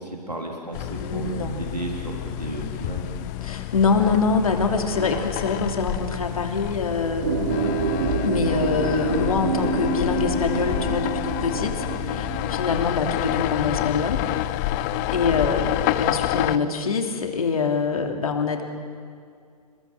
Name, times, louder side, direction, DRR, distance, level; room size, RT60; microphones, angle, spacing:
voice 1, 0.0-3.1 12.5-12.7 15.4-15.5, right 1 dB, 90° right, 0 dB, 3.8 m, -33 dB
sound 1, 0.7-16.6, left 15 dB, 30° left, 0.6 m, -28 dB
voice 2, 1.0-1.6 3.4-7.4 8.2-14.2 15.1-18.6, left 4 dB, 60° left, 4 dB, 3.0 m, -25 dB
sound 2, 7.2-12.5, right 4 dB, 55° right, 5.2 m, -27 dB
27.0 x 21.5 x 7.5 m, 2.3 s
figure-of-eight pair, 115°, 20 cm